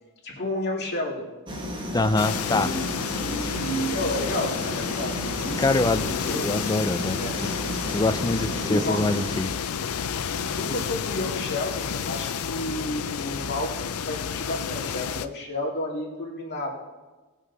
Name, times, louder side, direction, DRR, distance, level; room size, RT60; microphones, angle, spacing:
voice 1, 0.2-1.3 2.5-2.9 3.2-6.5 7.2-7.4 8.7-9.0 10.3-16.7, left 1 dB, 50° left, -3 dB, 2.3 m, -31 dB
sound 1, 1.5-9.4, equal, 20° right, 1.2 m, -33 dB
voice 2, 1.9-2.7 5.6-6.2 6.4-7.2 7.9-9.5, left 2 dB, 15° left, 11 dB, 0.4 m, -24 dB
sound 2, 2.2-15.3, left 7 dB, 75° left, 0.5 m, -31 dB
18.0 x 6.3 x 4.0 m, 1.2 s
head